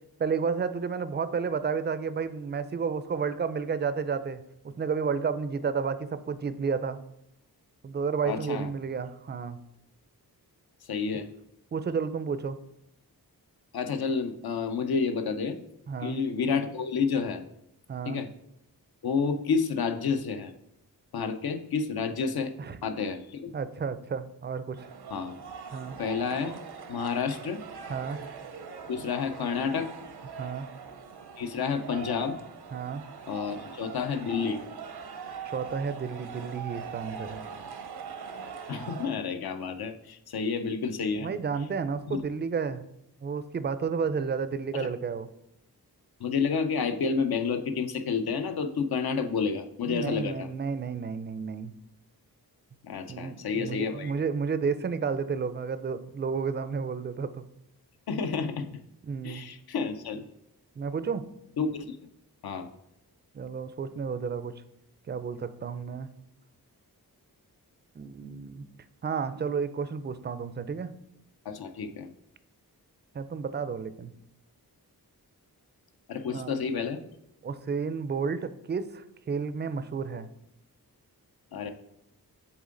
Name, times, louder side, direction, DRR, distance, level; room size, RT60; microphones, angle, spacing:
voice 1, 0.2-7.0 7.8-9.6 11.7-12.6 15.9-16.2 17.9-18.2 22.6-22.8 23.5-24.9 25.7-26.0 27.9-28.2 30.4-30.7 32.7-33.0 35.4-37.4 41.2-42.8 43.2-45.3 49.8-51.7 53.1-57.4 59.1-59.5 60.8-61.3 63.3-64.6 65.1-66.1 68.0-68.7 69.0-70.9 73.1-74.1 76.3-76.5 77.4-80.3, right 5 dB, 30° right, 12 dB, 0.4 m, -31 dB
voice 2, 8.2-8.7 10.9-11.3 13.7-15.6 16.0-17.4 18.1-18.3 19.0-20.5 21.1-22.5 22.8-23.5 25.1-25.4 26.0-26.5 26.9-27.6 28.9-29.9 31.4-32.4 33.3-34.6 38.7-41.3 42.1-42.2 44.7-44.9 46.2-50.5 52.8-54.1 58.1-58.7 59.2-60.2 61.6-62.0 62.4-62.7 71.5-72.1 76.1-77.0 81.5-81.7, left 5 dB, 70° left, 8 dB, 0.7 m, -30 dB
sound 1, 24.8-39.1, right 6 dB, 75° right, 0.7 m, -42 dB
7.2 x 3.7 x 3.8 m, 0.80 s
wide cardioid pair, 95°, 38 cm